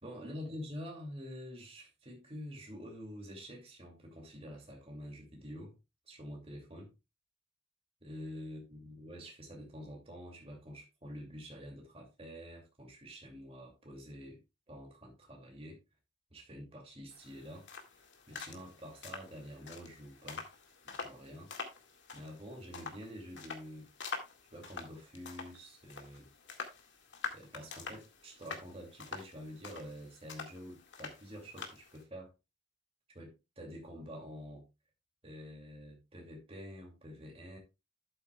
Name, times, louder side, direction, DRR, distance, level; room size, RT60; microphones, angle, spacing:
voice 1, 0.0-5.7 6.1-6.9 8.0-14.4 14.7-15.8 16.3-17.7 17.9-20.4 20.8-21.5 22.1-23.9 24.5-26.3 27.3-32.3 33.1-34.6 35.2-37.6, equal, 30° right, 2.6 m, -47 dB
sound 1, 17.1-32.0, left 4 dB, 75° left, 2.0 m, -47 dB
12.0 x 8.0 x 2.3 m
head